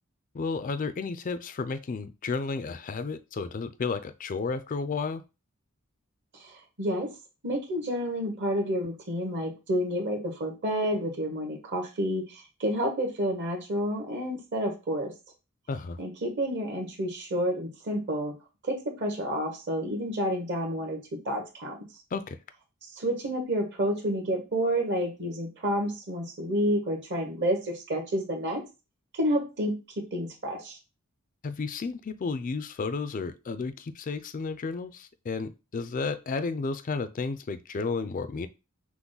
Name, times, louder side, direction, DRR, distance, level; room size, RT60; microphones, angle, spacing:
voice 1, 0.3-5.2 15.7-16.0 22.1-22.4 31.4-38.5, left 4 dB, 35° left, 12 dB, 0.4 m, -32 dB
voice 2, 6.4-7.1 7.4-15.1 16.0-18.3 18.6-21.0 21.2-21.8 22.8-28.6 29.2-29.7 30.1-30.8, equal, 55° right, 3 dB, 1.2 m, -29 dB
5.8 x 2.1 x 3.9 m, 0.28 s
head